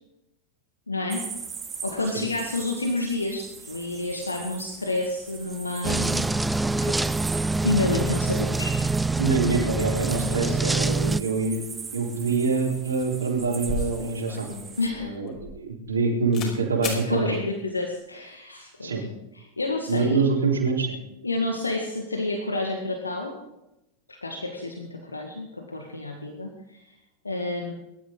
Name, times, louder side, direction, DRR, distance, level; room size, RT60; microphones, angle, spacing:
voice 1, 0.9-1.3 1.8-6.3 6.8-7.0 7.6-8.8 14.8-15.2 17.0-18.9 19.4-20.2 21.2-23.3 24.1-26.8 27.2-27.7, left 2 dB, 80° left, 3 dB, 1.7 m, -29 dB
sound 1, 1.1-14.9, right 6 dB, 20° right, 2.3 m, -40 dB
sound 2, 5.8-11.2, right 3 dB, 5° right, 0.5 m, -25 dB
voice 2, 9.2-11.6 11.9-14.5 14.9-17.4 18.8-19.0 19.9-20.9, right 4 dB, 70° right, -1 dB, 4.1 m, -25 dB
sound 3, 13.7-16.0 16.3-16.5 16.8-17.0, left 3 dB, 35° left, 5.5 m, -34 dB
22.5 x 13.0 x 3.9 m, 0.92 s
figure-of-eight pair, 90°, 0 cm